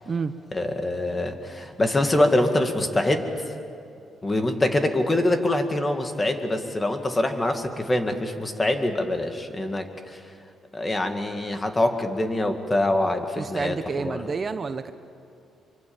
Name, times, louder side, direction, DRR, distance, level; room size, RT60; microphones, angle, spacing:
voice 1, 0.5-3.3 4.2-10.2 10.7-14.2, left 1 dB, 20° left, 6 dB, 2.3 m, -24 dB
voice 2, 13.4-14.9, right 5 dB, 40° right, 10 dB, 0.9 m, -29 dB
25.0 x 24.5 x 7.3 m, 2.5 s
cardioid pair, 90°, 0 cm